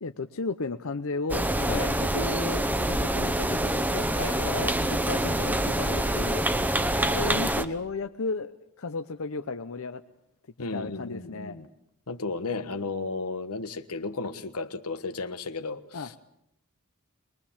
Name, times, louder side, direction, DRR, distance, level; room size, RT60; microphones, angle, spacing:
voice 1, 0.0-4.1 4.4-6.4 7.0-8.5 8.8-10.0 10.7-11.6 15.9-16.1, left 3 dB, 65° left, 8 dB, 0.8 m, -34 dB
sound 1, 1.3-7.6, right 1 dB, 10° right, 0.9 m, -26 dB
voice 2, 4.2-4.7 10.6-11.7 12.1-16.2, left 3 dB, 90° left, 10 dB, 1.3 m, -34 dB
23.0 x 21.5 x 7.3 m, 0.82 s
head